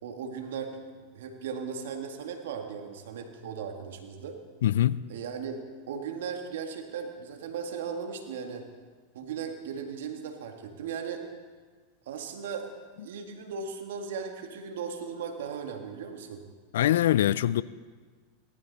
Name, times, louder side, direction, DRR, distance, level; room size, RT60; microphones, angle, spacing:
voice 1, 0.0-4.4 5.1-5.6 5.9-8.6 9.1-11.3 12.1-12.7 13.0-16.5, right 6 dB, 75° right, 1.9 m, -37 dB
voice 2, 4.6-5.0 16.7-17.6, left 12 dB, 75° left, 0.4 m, -23 dB
18.0 x 14.0 x 4.2 m
hypercardioid pair, 105°, 0 cm